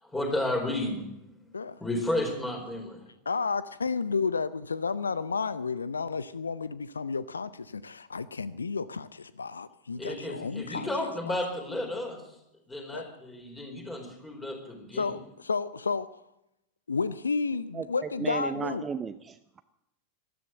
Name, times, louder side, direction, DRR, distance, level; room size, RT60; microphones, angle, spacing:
voice 1, 0.0-3.0 10.0-12.2 12.7-15.1, left 1 dB, 10° left, 4.5 m, -33 dB
voice 2, 3.3-10.9 11.3-11.4 12.9-13.0 14.9-16.2 16.9-18.9, left 4 dB, 75° left, 0.5 m, -31 dB
voice 3, 17.7-19.6, right 6 dB, 20° right, 0.6 m, -35 dB
13.5 x 13.0 x 7.9 m
figure-of-eight pair, 90°, 0 cm